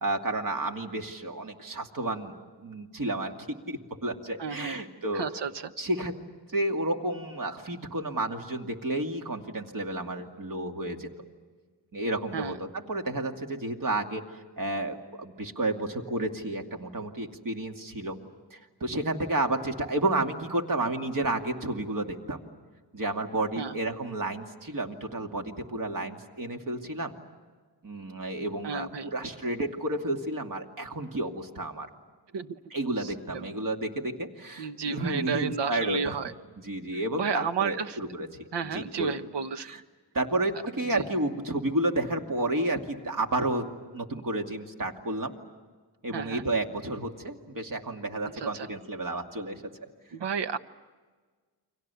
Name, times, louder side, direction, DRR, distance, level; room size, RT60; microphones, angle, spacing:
voice 1, 0.0-2.3 2.6-3.3 3.7-5.2 5.8-6.1 6.5-11.1 11.9-18.2 18.5-22.4 22.9-27.1 27.8-31.9 32.7-36.2 36.6-38.3 38.7-39.2 39.6-39.8 40.1-43.7 43.9-45.3 46.0-49.6, right 2 dB, 45° right, 3 dB, 2.5 m, -31 dB
voice 2, 4.4-4.8 5.1-5.7 12.3-12.6 23.6-23.8 28.6-29.1 32.3-32.6 33.0-33.5 34.6-36.3 36.9-38.0 38.5-39.8 40.9-41.0 46.1-46.4 48.2-48.7 50.1-50.6, right 6 dB, 70° right, 10 dB, 1.2 m, -32 dB
30.0 x 24.5 x 7.0 m, 1.4 s
wide cardioid pair, 120°, 43 cm